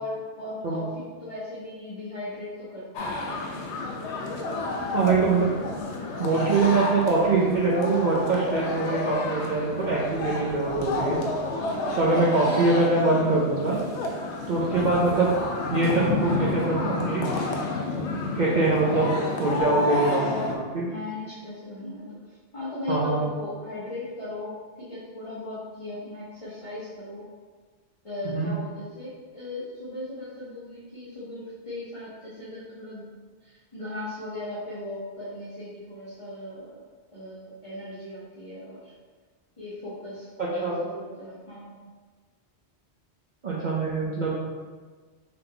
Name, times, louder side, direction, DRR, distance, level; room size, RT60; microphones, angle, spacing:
voice 1, 0.0-3.6 11.6-11.9 20.8-27.3 28.0-33.1 33.4-36.7 37.1-38.9 39.6-41.8, left 2 dB, 30° left, -12 dB, 1.1 m, -38 dB
sound 1, 2.9-20.6, left 2 dB, 80° left, 0.9 m, -30 dB
voice 2, 4.9-5.5 6.2-11.2 12.0-13.8 14.5-15.3 15.7-17.2 18.3-19.1 19.4-20.9 22.9-23.2 28.2-28.5 40.6-40.8 43.4-44.4, right 3 dB, 50° right, -5 dB, 0.7 m, -23 dB
3.9 x 3.9 x 3.3 m, 1.4 s
omnidirectional pair, 1.2 m